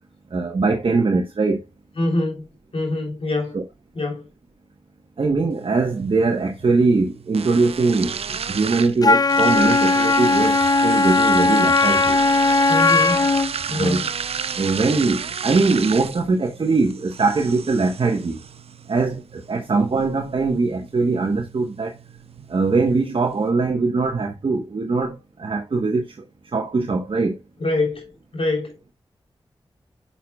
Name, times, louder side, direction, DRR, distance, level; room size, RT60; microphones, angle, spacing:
voice 1, 0.3-1.6 3.5-3.6 5.2-12.2 13.7-14.0 14.5-18.4 18.9-22.0 22.5-26.2 26.5-27.4, right 3 dB, 60° right, 1.1 m, -21 dB
voice 2, 2.0-2.5 2.7-3.6 3.9-4.3 12.7-13.3 13.7-14.1 27.6-28.7, left 2 dB, 70° left, 3.3 m, -24 dB
sound 1, 5.5-23.5, right 6 dB, 85° right, 0.5 m, -33 dB
Wind instrument woodwind instrument, 9.0-13.5, left 3 dB, 40° left, 0.4 m, -17 dB
9.3 x 5.7 x 2.3 m
wide cardioid pair, 60°, 10 cm